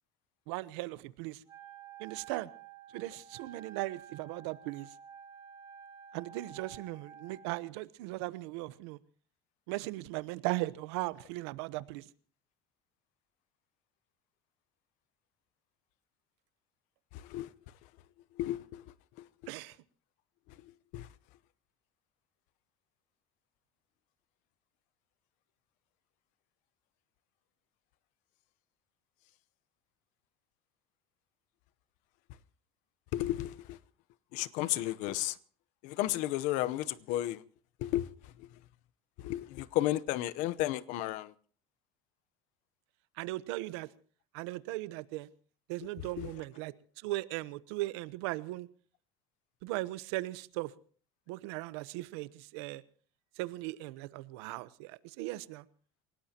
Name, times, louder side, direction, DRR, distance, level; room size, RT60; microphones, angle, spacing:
voice 1, 0.5-1.4 2.0-2.5 2.9-4.9 6.1-9.0 9.7-12.0 19.5-19.8 43.2-43.9 44.3-45.3 45.7-46.7 47.0-48.7 49.6-50.7 51.3-52.8 53.4-55.6, right 19 dB, 85° right, 0.9 m, -38 dB
Wind instrument woodwind instrument, 1.5-7.6, right 7 dB, 30° right, 3.0 m, -52 dB
voice 2, 17.1-17.5 18.4-18.8 20.9-21.1 33.1-33.8 34.3-35.4 35.8-37.4 37.8-38.1 39.2-41.3 46.2-46.3, left 15 dB, 65° left, 0.8 m, -33 dB
28.5 x 17.5 x 2.9 m
cardioid pair, 135°, 14 cm